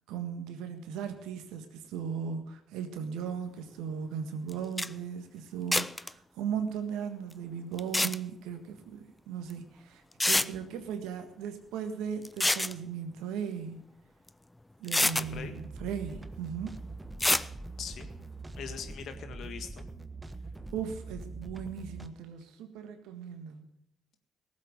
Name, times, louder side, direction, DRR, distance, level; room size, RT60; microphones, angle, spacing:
voice 1, 0.1-13.8 14.8-16.7 20.7-23.7, right 7 dB, 70° right, 8 dB, 1.6 m, -37 dB
sound 1, 4.5-4.6 4.8-4.9 5.7-6.1 7.8-8.2 9.5-9.6 10.2-10.5 12.2-12.7 14.3-14.4 14.9-15.3 17.2-17.5, left 1 dB, 10° left, 0.5 m, -26 dB
sound 2, 15.1-22.1, right 2 dB, 15° right, 1.3 m, -43 dB
voice 2, 17.8-18.1 18.5-19.9, left 7 dB, 60° left, 7 dB, 1.7 m, -41 dB
18.0 x 7.8 x 6.8 m, 0.75 s
hypercardioid pair, 45°, 0 cm